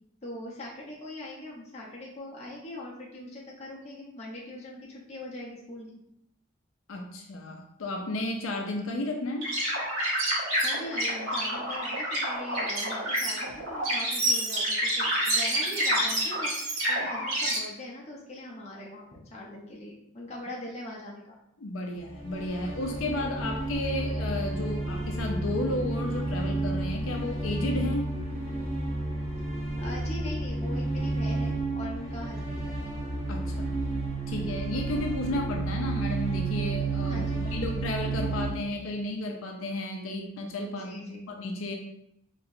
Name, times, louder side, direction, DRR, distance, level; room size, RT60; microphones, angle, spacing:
voice 1, 0.2-6.0 10.6-21.4 29.8-32.7 37.1-37.8 40.7-41.3, left 1 dB, 35° left, -3 dB, 0.8 m, -41 dB
voice 2, 6.9-9.5 21.6-28.1 33.3-33.7 34.3-41.7, left 1 dB, 85° left, 2 dB, 0.5 m, -33 dB
sound 1, 9.4-17.6, right 1 dB, 90° right, 1.5 m, -28 dB
sound 2, 22.0-38.5, right 2 dB, 30° right, 0.8 m, -31 dB
4.2 x 3.0 x 2.7 m, 0.76 s
head